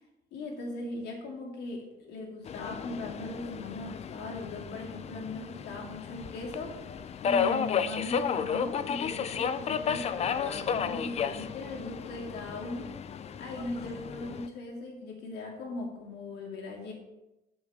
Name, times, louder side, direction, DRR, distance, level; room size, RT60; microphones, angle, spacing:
voice 1, 0.3-12.9 13.4-16.9, left 2 dB, 80° left, -1 dB, 2.3 m, -39 dB
Subway metro underground, 2.5-14.5, left 7 dB, 40° left, 0.5 m, -33 dB
9.1 x 7.2 x 3.4 m, 0.97 s
cardioid pair, 110°, 17 cm